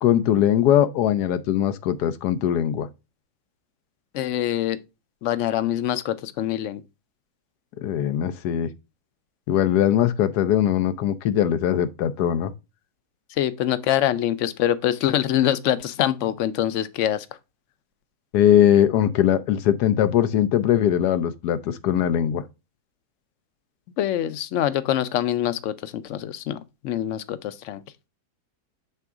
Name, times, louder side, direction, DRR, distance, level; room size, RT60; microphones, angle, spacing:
voice 1, 0.0-2.9 7.8-8.7 9.5-12.5 18.3-22.4, left 10 dB, 85° left, 1.2 m, -20 dB
voice 2, 4.1-4.8 5.2-6.8 13.4-17.3 24.0-26.6 26.8-27.8, left 11 dB, 65° left, 0.8 m, -24 dB
6.9 x 3.5 x 4.8 m
omnidirectional pair, 1.7 m